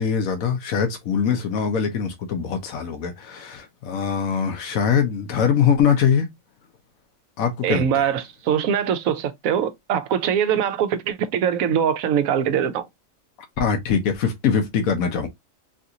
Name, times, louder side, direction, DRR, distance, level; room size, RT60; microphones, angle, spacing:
voice 1, 0.0-6.3 7.4-8.1 13.6-15.3, left 7 dB, 90° left, 1.3 m, -22 dB
voice 2, 7.6-12.9, right 8 dB, 85° right, 1.1 m, -22 dB
3.9 x 2.5 x 2.8 m
omnidirectional pair, 1.4 m